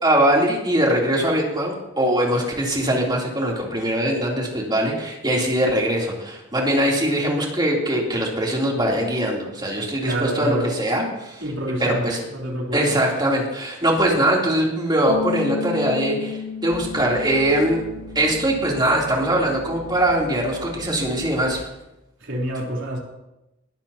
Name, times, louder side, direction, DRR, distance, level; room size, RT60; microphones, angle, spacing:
voice 1, 0.0-11.4 11.8-12.2 12.7-17.9 18.1-21.7, right 1 dB, 20° right, 3.3 m, -21 dB
voice 2, 10.0-10.7 11.4-13.0 22.2-23.0, right 1 dB, 70° right, 3.8 m, -27 dB
Bass guitar, 15.1-21.3, left 5 dB, 85° left, 0.9 m, -35 dB
sound 1, 16.7-21.6, right 4 dB, 60° left, 5.8 m, -42 dB
20.0 x 13.0 x 2.9 m
head